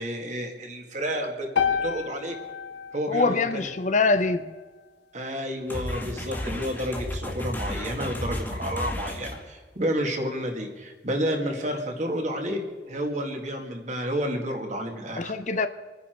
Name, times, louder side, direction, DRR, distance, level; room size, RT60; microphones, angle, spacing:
voice 1, 0.0-2.4 2.9-3.7 5.1-15.3, equal, 40° right, 2.2 m, -30 dB
sound 1, 1.6-5.7, left 7 dB, 75° left, 1.2 m, -32 dB
voice 2, 3.1-4.4 15.2-15.7, left 3 dB, 45° left, 0.7 m, -24 dB
sound 2, 5.7-9.4, left 1 dB, 10° left, 2.0 m, -33 dB
26.0 x 10.5 x 4.6 m
head